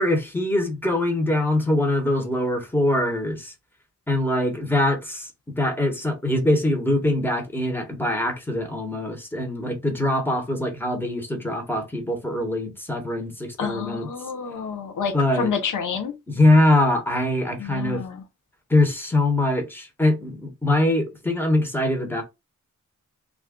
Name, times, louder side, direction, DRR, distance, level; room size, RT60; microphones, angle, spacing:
voice 1, 0.0-3.5 4.1-5.3 5.6-14.1 15.1-15.5 16.3-18.0 18.7-22.2, left 1 dB, 5° left, 0.9 m, -23 dB
voice 2, 13.6-16.1 17.6-18.2, left 6 dB, 90° left, 0.6 m, -29 dB
2.4 x 2.1 x 3.5 m
cardioid pair, 70°, 30 cm